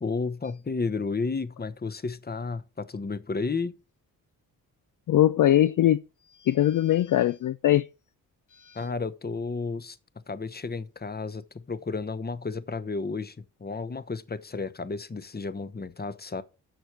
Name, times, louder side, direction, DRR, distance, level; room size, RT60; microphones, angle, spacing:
voice 1, 0.0-3.7 8.7-10.0 10.3-13.3 13.6-16.4, left 4 dB, 25° left, 1.0 m, -32 dB
voice 2, 5.1-6.0 6.4-7.9 8.6-8.8, left 12 dB, 55° left, 0.5 m, -21 dB
7.9 x 6.5 x 6.0 m
supercardioid pair, 45°, 40 cm